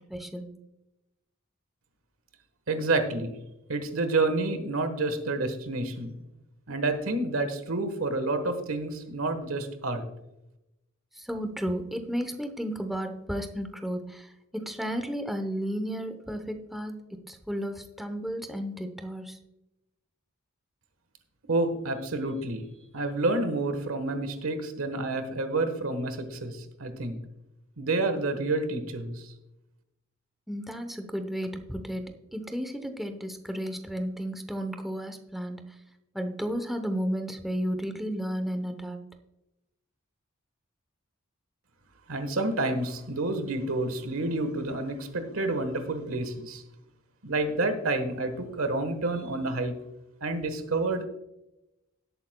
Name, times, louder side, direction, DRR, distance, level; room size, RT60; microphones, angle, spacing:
voice 1, 0.1-0.5 11.2-16.9 17.3-19.4 30.5-32.0 32.3-35.6 36.1-39.0, equal, ahead, 5 dB, 0.8 m, -33 dB
voice 2, 2.7-3.4 3.7-6.2 6.7-10.0 21.5-22.6 22.9-27.2 27.8-29.3 42.1-46.6 47.2-49.7 50.2-51.0, right 2 dB, 85° right, 9 dB, 1.3 m, -29 dB
17.5 x 8.2 x 2.2 m, 0.93 s
head